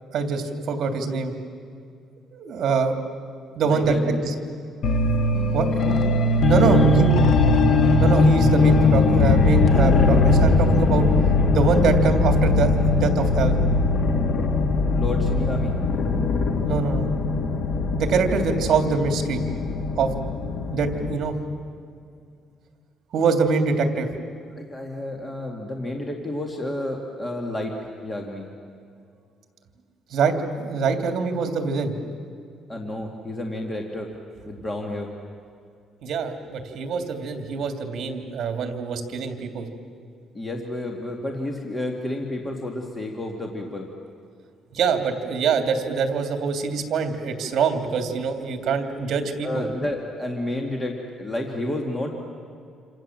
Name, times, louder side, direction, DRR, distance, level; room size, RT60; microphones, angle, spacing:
voice 1, 0.1-1.3 2.3-2.9 3.5-4.3 5.5-6.0 6.5-7.1 8.0-11.1 11.5-13.5 16.6-17.1 17.9-19.4 20.0-20.2 20.7-21.3 23.1-24.1 30.1-31.9 36.0-39.7 44.7-49.7, right 5 dB, 55° right, 5 dB, 3.1 m, -24 dB
voice 2, 3.6-4.2 6.5-7.2 14.9-15.7 24.5-27.8 28.0-28.5 32.7-34.1 34.5-35.1 40.3-43.9 49.4-52.1, left 1 dB, 15° left, 1 dB, 2.3 m, -30 dB
sound 1, 4.8-21.2, left 2 dB, 55° left, 2.1 m, -20 dB
28.0 x 27.0 x 7.6 m, 2.3 s
cardioid pair, 135°, 0 cm